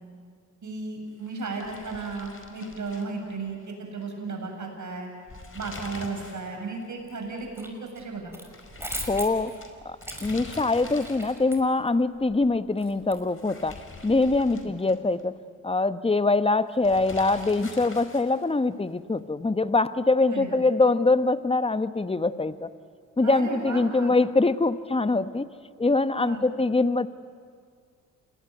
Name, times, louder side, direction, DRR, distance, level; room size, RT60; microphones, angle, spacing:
voice 1, 0.6-5.1 5.5-8.3 14.5-14.6 20.3-20.6 23.2-24.1 26.1-26.4, right 3 dB, 45° right, 2 dB, 8.0 m, -34 dB
sound 1, 1.2-3.7 4.0-4.1 5.1-6.5 6.8-6.9 8.5-11.6 13.2-15.2 16.8-18.5, left 3 dB, 30° left, 4.8 m, -43 dB
sound 2, 7.1-7.7 8.0-13.5, right 1 dB, 5° right, 6.0 m, -40 dB
voice 2, 9.1-9.5 9.8-15.4 15.6-22.7 23.2-25.5 25.8-27.1, left 3 dB, 15° left, 13 dB, 1.1 m, -23 dB
27.5 x 20.0 x 9.7 m, 2.2 s
hypercardioid pair, 45°, 39 cm